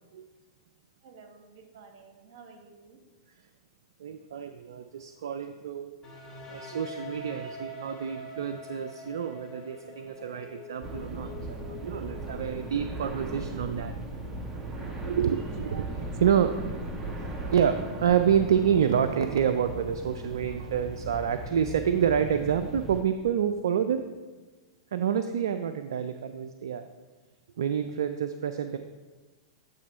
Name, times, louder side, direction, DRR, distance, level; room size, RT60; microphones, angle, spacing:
voice 1, 1.0-3.0 15.6-16.4, right 5 dB, 55° right, 4 dB, 1.4 m, -51 dB
voice 2, 4.0-6.0 6.5-13.9 15.1-15.9 16.2-16.5 17.0-24.0 24.9-26.9 27.6-28.8, right 8 dB, 70° right, 9 dB, 0.3 m, -28 dB
sound 1, 6.0-13.8, left 1 dB, 20° left, 2.1 m, -45 dB
sound 2, 10.8-23.0, right 2 dB, 15° right, 1.0 m, -37 dB
9.2 x 3.1 x 5.5 m, 1.3 s
hypercardioid pair, 100°, 2 cm